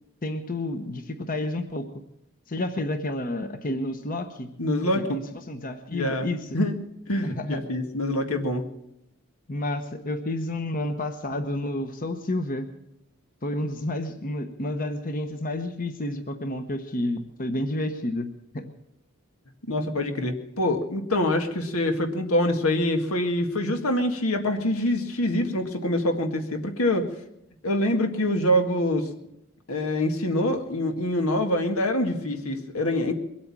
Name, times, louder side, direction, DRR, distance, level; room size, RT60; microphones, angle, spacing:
voice 1, 0.2-1.9 2.5-4.5 5.1-6.6 7.2-7.6 9.5-12.7 13.4-18.3 18.5-18.7, left 1 dB, 40° left, 7 dB, 1.0 m, -30 dB
voice 2, 4.6-5.2 5.9-6.3 6.5-6.8 7.1-8.7 19.7-27.1 27.6-29.1 29.7-33.1, left 1 dB, 85° left, 5 dB, 1.9 m, -25 dB
22.5 x 8.7 x 7.4 m, 0.84 s
head